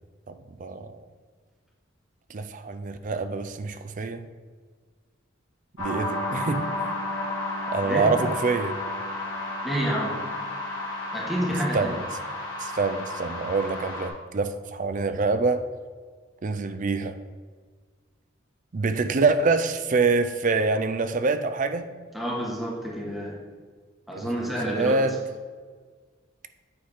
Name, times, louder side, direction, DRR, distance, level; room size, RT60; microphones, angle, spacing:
voice 1, 0.3-1.0 2.3-4.2 5.8-7.0 7.7-8.8 11.7-12.1 12.6-15.7 16.4-17.2 18.7-21.9 24.1-25.2, right 3 dB, 40° right, 10 dB, 0.4 m, -26 dB
sound 1, 5.8-14.1, left 2 dB, 85° left, 1.6 m, -32 dB
voice 2, 7.8-8.2 9.6-10.2 11.1-11.9 22.1-23.4 24.1-25.0, equal, ahead, -4 dB, 1.4 m, -29 dB
8.6 x 3.6 x 4.8 m, 1.6 s
head